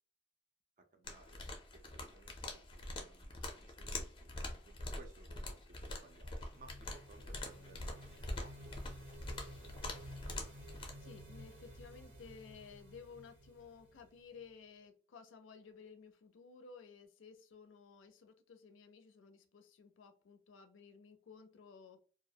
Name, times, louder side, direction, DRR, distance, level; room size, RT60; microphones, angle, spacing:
voice 1, 0.8-1.4 1.7-4.3 4.6-8.8 9.4-9.8, right 3 dB, 45° right, 5 dB, 0.4 m, -61 dB
sound 1, 1.0-10.9, left 2 dB, 25° left, 0.4 m, -45 dB
sound 2, 5.9-14.5, equal, 90° right, 0.9 m, -54 dB
voice 2, 11.0-22.0, left 5 dB, 90° left, 7 dB, 0.4 m, -56 dB
2.3 x 2.0 x 2.6 m, 0.37 s
head